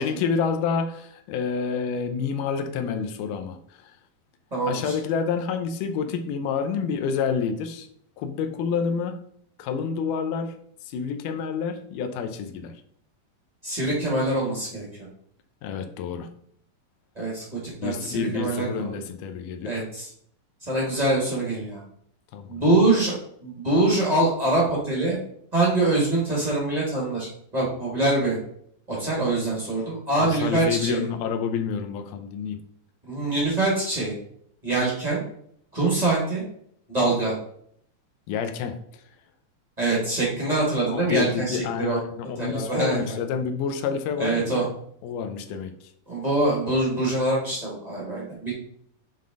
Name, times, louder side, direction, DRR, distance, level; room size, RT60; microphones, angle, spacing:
voice 1, 0.0-4.0 4.6-7.9 8.2-9.2 9.6-10.6 10.8-12.8 15.6-16.3 17.8-19.8 22.3-22.7 30.2-32.6 38.3-39.0 40.9-44.7 45.0-45.9, left 6 dB, 80° left, 6 dB, 2.0 m, -28 dB
voice 2, 4.5-4.9 13.6-14.9 17.1-19.0 19.6-20.0 20.6-21.8 22.5-23.1 23.4-25.2 25.5-27.3 27.5-28.4 28.9-31.0 33.1-34.1 34.6-35.2 35.7-36.4 36.9-37.3 39.8-42.0 42.4-43.2 44.2-44.6 46.1-48.5, right 2 dB, 40° right, -5 dB, 0.5 m, -24 dB
7.6 x 3.6 x 3.7 m, 0.67 s
omnidirectional pair, 4.1 m